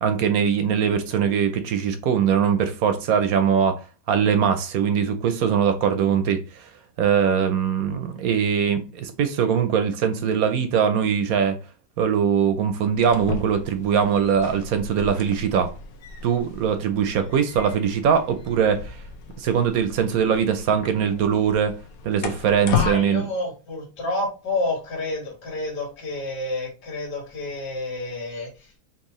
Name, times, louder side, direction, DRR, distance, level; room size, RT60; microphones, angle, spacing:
voice 1, 0.0-3.8 4.1-6.7 7.0-11.6 12.0-15.7 16.2-19.0 19.4-21.7 22.0-23.3, right 7 dB, 70° right, 1.0 m, -21 dB
sound 1, 12.9-23.0, left 6 dB, 65° left, 1.1 m, -34 dB
voice 2, 22.7-28.5, left 2 dB, 85° left, 2.1 m, -29 dB
4.6 x 2.9 x 3.0 m
omnidirectional pair, 1.7 m